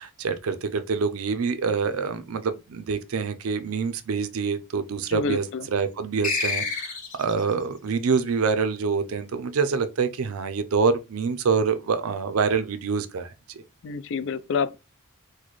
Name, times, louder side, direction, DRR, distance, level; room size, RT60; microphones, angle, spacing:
voice 1, 0.0-6.9 7.2-13.6, right 5 dB, 75° right, 0.4 m, -26 dB
voice 2, 5.1-5.7 13.8-14.8, left 5 dB, 60° left, 0.3 m, -28 dB
sound 1, 6.2-7.4, left 4 dB, 35° left, 1.0 m, -28 dB
4.1 x 2.2 x 3.1 m
head